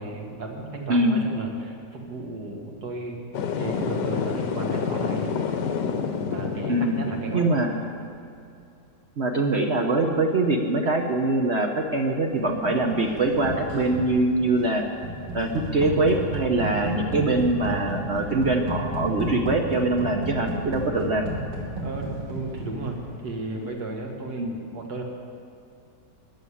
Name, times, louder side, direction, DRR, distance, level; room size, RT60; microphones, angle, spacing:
voice 1, 0.0-3.2 3.6-5.3 5.9-6.0 6.2-7.5 21.8-23.0 23.2-25.0, right 2 dB, 65° right, 1 dB, 2.3 m, -34 dB
sound 1, 3.3-7.6, left 6 dB, 80° left, 1.5 m, -28 dB
voice 2, 6.7-7.0 7.3-7.8 9.2-14.9 15.3-21.3 24.4-24.5, right 2 dB, 45° right, 2 dB, 1.0 m, -23 dB
sound 2, 12.4-23.3, right 1 dB, 90° right, 3.1 m, -33 dB
14.5 x 7.4 x 10.0 m, 2.5 s
omnidirectional pair, 1.9 m